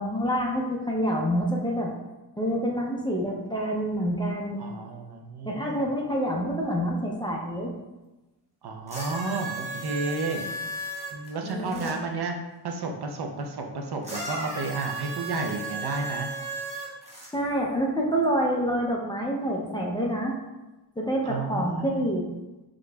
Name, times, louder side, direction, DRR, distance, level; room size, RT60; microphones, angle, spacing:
voice 1, 0.0-1.9 2.4-4.6 5.4-7.7 11.4-12.0 17.3-20.4 21.0-22.3, equal, 10° left, -2 dB, 0.5 m, -27 dB
voice 2, 4.6-5.8 8.6-10.5 11.1-12.3 12.6-16.3 21.3-22.0, right 3 dB, 65° right, 3 dB, 0.6 m, -32 dB
sound 1, 8.9-11.9 14.0-17.3 18.2-18.3, right 2 dB, 15° right, 0.8 m, -35 dB
5.0 x 3.7 x 2.2 m, 1.1 s
wide cardioid pair, 160°, 41 cm